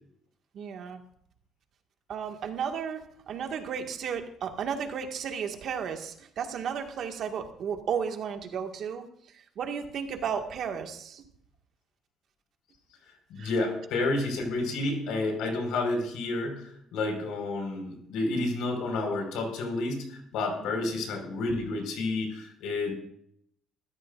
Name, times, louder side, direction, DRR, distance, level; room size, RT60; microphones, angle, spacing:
voice 1, 0.5-1.0 2.1-11.2 13.4-13.5 20.7-20.8, right 7 dB, 60° right, 4 dB, 1.9 m, -34 dB
voice 2, 13.3-22.9, left 2 dB, 85° left, 3 dB, 4.9 m, -30 dB
21.0 x 14.0 x 2.5 m, 0.67 s
cardioid pair, 115°, 0 cm